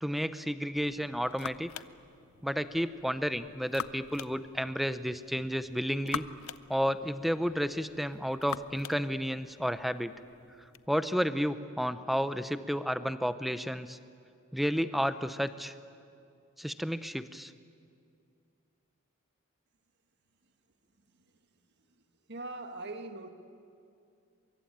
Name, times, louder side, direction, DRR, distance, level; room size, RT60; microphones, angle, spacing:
voice 1, 0.0-1.7 2.4-6.2 6.7-10.1 10.9-14.0 14.5-15.7 16.6-17.5, equal, ahead, 13 dB, 0.7 m, -31 dB
sound 1, 0.7-10.9, left 8 dB, 80° left, 0.6 m, -45 dB
voice 2, 21.0-21.5 21.8-22.0 22.3-23.3, right 2 dB, 55° right, 7 dB, 1.7 m, -43 dB
23.5 x 23.0 x 8.8 m, 2.4 s
head